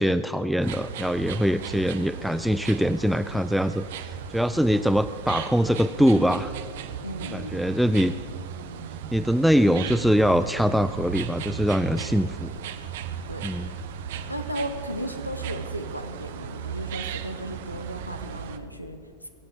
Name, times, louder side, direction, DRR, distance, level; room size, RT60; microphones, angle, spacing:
voice 1, 0.0-6.5 7.3-8.1 9.1-12.5 13.4-13.7, equal, ahead, 11 dB, 0.3 m, -23 dB
sound 1, 0.6-18.6, right 8 dB, 55° right, 0.9 m, -36 dB
voice 2, 7.0-7.6 13.3-13.5 14.3-19.3, equal, 90° left, 7 dB, 0.9 m, -35 dB
21.5 x 7.7 x 6.8 m, 2.5 s
figure-of-eight pair, 90°, 0 cm